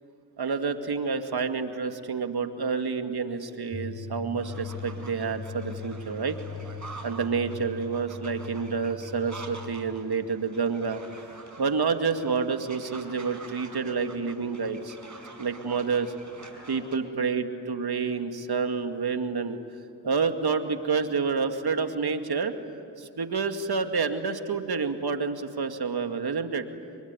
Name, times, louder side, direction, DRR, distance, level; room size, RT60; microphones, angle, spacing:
voice 1, 0.4-6.4 7.0-11.0 11.6-15.0 15.4-16.1 16.7-19.6 20.0-22.5 23.0-26.6, right 5 dB, 60° right, 7 dB, 2.3 m, -28 dB
sound 1, 3.7-9.9, left 5 dB, 25° left, 2.4 m, -40 dB
sound 2, 4.3-17.0, right 3 dB, 40° right, 5.2 m, -47 dB
25.5 x 23.5 x 9.9 m, 2.3 s
supercardioid pair, 45°, 44 cm